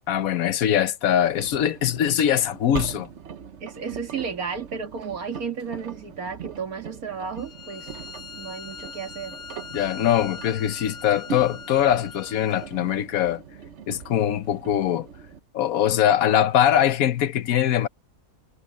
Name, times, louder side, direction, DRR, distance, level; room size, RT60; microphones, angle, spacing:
voice 1, 0.1-3.1 9.7-13.4 13.9-15.1 15.5-17.9, left 10 dB, 80° left, 1.2 m, -22 dB
Engine, 1.2-15.4, right 6 dB, 55° right, 1.2 m, -40 dB
voice 2, 3.6-7.9 8.4-9.4, right 6 dB, 85° right, 2.5 m, -33 dB
Bowed string instrument, 7.4-12.7, left 5 dB, 35° left, 4.4 m, -41 dB
omnidirectional pair, 1.5 m